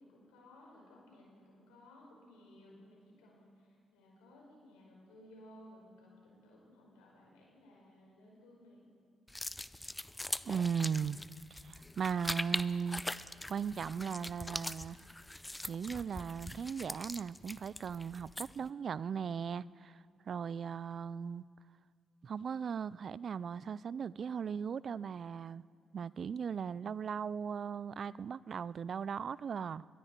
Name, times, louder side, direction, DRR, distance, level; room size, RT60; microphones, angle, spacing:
voice 1, 0.0-8.8, left 1 dB, 90° left, -2 dB, 4.8 m, -58 dB
sound 1, 9.3-18.7, left 1 dB, 15° left, 0.5 m, -42 dB
voice 2, 10.5-11.2 11.5-15.0 15.6-21.4 22.2-25.6 25.9-29.9, right 7 dB, 55° right, 20 dB, 0.3 m, -38 dB
22.5 x 13.5 x 4.4 m, 2.5 s
supercardioid pair, 55°, 0 cm